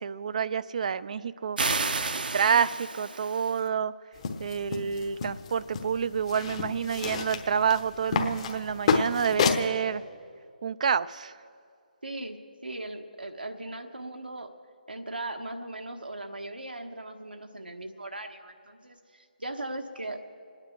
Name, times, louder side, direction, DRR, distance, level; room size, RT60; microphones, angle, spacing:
voice 1, 0.0-1.6 2.1-3.9 4.4-10.0 10.6-11.3, right 7 dB, 50° right, 16 dB, 0.4 m, -28 dB
sound 1, 1.6-3.6, right 3 dB, 70° right, 0.8 m, -31 dB
sound 2, 4.1-9.7, left 5 dB, 35° left, 1.0 m, -30 dB
voice 2, 12.0-14.5 14.9-20.2, right 2 dB, 85° right, 5 dB, 1.2 m, -38 dB
26.0 x 9.6 x 4.5 m, 2.4 s
figure-of-eight pair, 150°, 5 cm